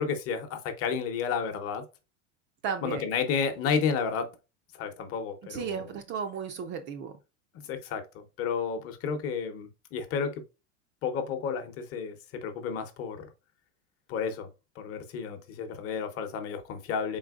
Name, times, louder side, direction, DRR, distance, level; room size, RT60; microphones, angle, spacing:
voice 1, 0.0-1.8 2.8-4.3 4.7-5.9 7.5-10.4 11.0-13.3 14.1-14.5 14.8-17.2, left 6 dB, 40° left, 0.8 m, -31 dB
voice 2, 2.6-3.1 5.5-7.2, right 7 dB, 30° right, 0.4 m, -34 dB
4.2 x 3.9 x 2.3 m
supercardioid pair, 145°, 37 cm